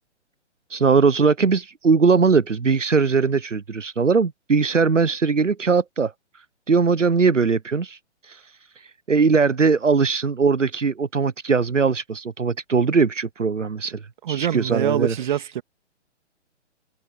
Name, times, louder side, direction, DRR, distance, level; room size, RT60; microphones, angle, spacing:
voice 1, 0.7-6.1 6.7-8.0 8.2-8.4 9.1-14.0 14.3-15.1, right 5 dB, 85° right, 0.8 m, -20 dB
voice 2, 14.2-15.6, right 11 dB, 40° right, 2.6 m, -24 dB
figure-of-eight pair, 130°, 36 cm